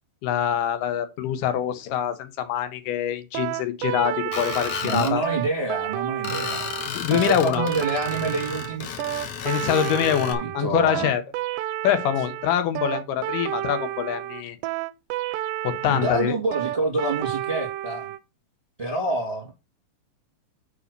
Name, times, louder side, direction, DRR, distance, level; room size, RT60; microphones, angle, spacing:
voice 1, 0.2-5.2 6.9-7.7 9.4-11.2 11.8-14.6 15.6-16.3, left 10 dB, 85° left, 2.5 m, -24 dB
sound 1, 3.3-18.2, right 14 dB, 90° right, 2.2 m, -30 dB
Screech, 4.3-5.1 6.2-10.3, left 7 dB, 65° left, 1.8 m, -33 dB
voice 2, 4.8-6.7 7.1-8.9 10.4-11.1 15.9-18.1 18.8-19.5, right 2 dB, 20° right, 1.1 m, -27 dB
5.6 x 5.1 x 6.6 m
omnidirectional pair, 3.7 m